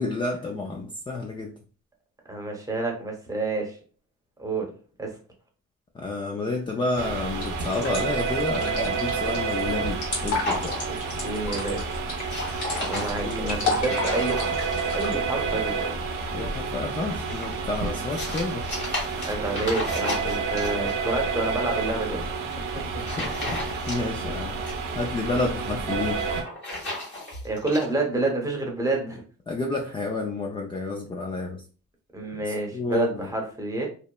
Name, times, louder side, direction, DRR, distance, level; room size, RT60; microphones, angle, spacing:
voice 1, 0.0-1.5 5.9-10.8 12.9-13.6 16.3-18.7 23.0-26.2 29.5-31.6 32.3-33.3, left 2 dB, 20° left, 2 dB, 0.3 m, -30 dB
voice 2, 2.3-3.8 4.4-4.7 5.0-5.2 10.9-11.0 11.2-11.9 12.8-14.6 14.9-15.9 19.2-22.4 22.7-23.0 27.4-29.2 32.1-33.9, right 2 dB, 10° right, 0 dB, 0.8 m, -29 dB
sound 1, 7.0-26.4, right 4 dB, 85° right, 0.6 m, -30 dB
sound 2, 7.4-15.1, left 3 dB, 80° left, 1.4 m, -32 dB
sound 3, 10.4-11.3 11.6-11.9 12.2-15.1 16.9-20.9 22.3-22.5 23.0-24.2 24.5-25.5 26.1-27.8, left 1 dB, 35° left, 1.3 m, -34 dB
2.8 x 2.0 x 2.2 m, 0.38 s
cardioid pair, 90°, 30 cm